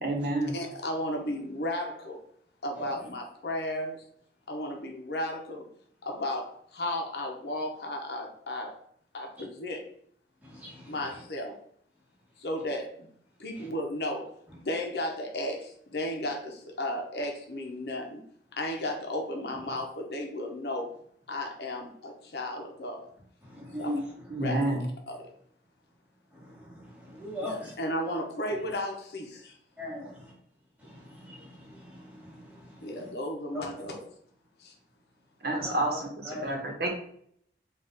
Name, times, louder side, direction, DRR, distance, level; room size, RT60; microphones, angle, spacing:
voice 1, 0.0-0.6 24.3-24.9 35.4-36.9, right 1 dB, 60° right, 1 dB, 0.9 m, -29 dB
voice 2, 0.5-2.2 2.6-4.0 4.5-5.7 6.0-8.8 9.1-9.9 10.9-11.6 12.4-13.1 13.4-18.2 18.5-20.9 21.3-23.1 23.8-24.0 24.4-24.8 25.1-25.3 27.4-29.6 32.8-34.1 34.6-34.7, left 1 dB, 65° left, 2 dB, 0.7 m, -34 dB
voice 3, 10.4-11.0 13.6-13.7 23.4-24.0 26.3-27.7 28.5-28.6 29.8-30.3 30.8-33.1 33.5-33.7 35.6-36.0 36.2-36.6, left 1 dB, 10° right, -4 dB, 1.1 m, -40 dB
3.9 x 2.4 x 3.5 m, 0.65 s
head